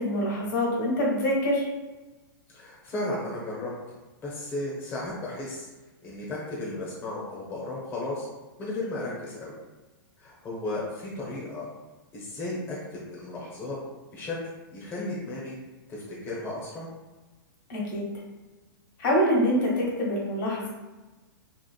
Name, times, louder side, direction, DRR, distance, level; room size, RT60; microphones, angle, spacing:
voice 1, 0.0-1.7 17.7-18.0 19.0-20.7, equal, 65° left, -4 dB, 1.2 m, -25 dB
voice 2, 2.5-3.7 4.2-5.7 6.0-8.3 8.6-9.5 10.2-11.7 12.1-13.8 14.1-14.4 14.7-15.6 15.9-16.9, left 2 dB, 20° left, -6 dB, 0.6 m, -34 dB
2.9 x 2.4 x 2.2 m, 1.2 s
hypercardioid pair, 140°, 12 cm